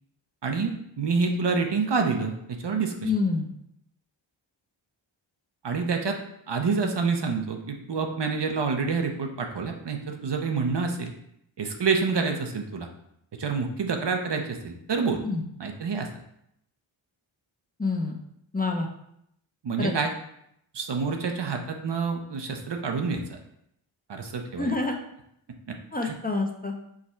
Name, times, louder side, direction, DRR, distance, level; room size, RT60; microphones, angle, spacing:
voice 1, 0.4-3.1 5.6-6.2 6.5-11.1 11.6-12.9 13.4-15.2 15.6-16.1 19.6-20.1 20.7-23.4 24.1-24.7 25.7-25.8 26.0-26.1, right 4 dB, 60° right, 3 dB, 0.7 m, -27 dB
voice 2, 3.0-3.5 15.2-15.4 17.8-18.2 18.5-18.9 19.8-19.9 24.6-25.0 25.9-26.8, left 3 dB, 20° left, 2 dB, 0.6 m, -27 dB
4.7 x 2.3 x 4.3 m, 0.75 s
cardioid pair, 40°, 49 cm